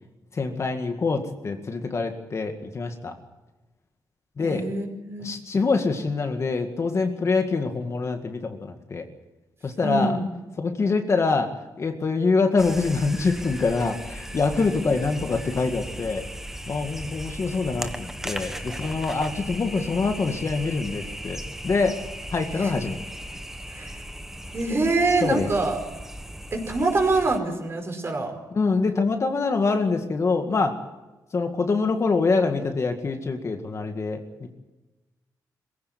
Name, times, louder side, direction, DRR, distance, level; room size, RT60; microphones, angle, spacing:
voice 1, 0.3-3.1 4.4-4.7 5.2-9.0 9.6-10.2 10.6-11.5 11.8-16.2 16.7-21.4 21.6-22.0 22.3-23.0 25.2-25.5 28.5-30.8 31.3-34.2, left 4 dB, 40° left, 5 dB, 2.0 m, -25 dB
voice 2, 4.4-5.3 9.8-10.3 22.5-22.7 23.7-24.0 24.5-25.8 26.5-28.3, right 2 dB, 35° right, 3 dB, 5.2 m, -25 dB
sound 1, 12.6-27.4, right 1 dB, 5° right, 1.4 m, -37 dB
22.5 x 16.0 x 9.6 m, 1.1 s
cardioid pair, 115°, 7 cm